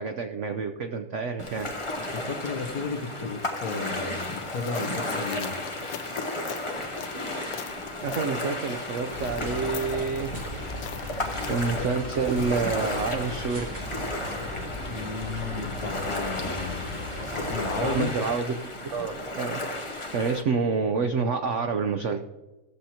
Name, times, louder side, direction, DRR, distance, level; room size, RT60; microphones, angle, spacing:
voice 1, 0.0-1.7 8.0-10.4 11.4-14.0 17.8-18.5 18.8-22.2, right 5 dB, 70° right, 6 dB, 0.7 m, -28 dB
Ocean, 1.4-20.4, left 1 dB, 25° left, 0.7 m, -34 dB
voice 2, 2.1-5.6 14.8-16.9 17.3-18.1, left 4 dB, 55° left, 6 dB, 1.4 m, -33 dB
sound 1, 4.2-11.8, left 10 dB, 85° left, 1.4 m, -42 dB
sound 2, 9.1-18.0, left 1 dB, 25° right, 2.7 m, -37 dB
15.5 x 7.6 x 2.9 m, 1.1 s
omnidirectional pair, 2.0 m